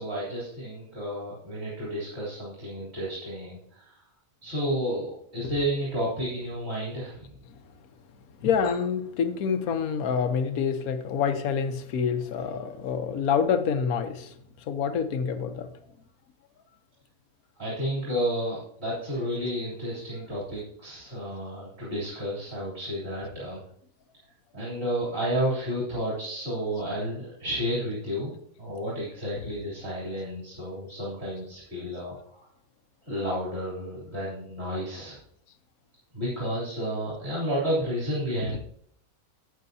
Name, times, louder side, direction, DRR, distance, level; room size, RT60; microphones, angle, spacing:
voice 1, 0.0-4.0 4.4-7.3 17.6-23.6 24.5-28.3 28.6-32.4 33.1-35.2 36.1-38.6, equal, 40° right, 3.8 m, -31 dB
voice 2, 8.4-14.3 14.7-15.7, left 6 dB, 75° left, 1.3 m, -27 dB
12.5 x 8.7 x 2.8 m
omnidirectional pair, 1.6 m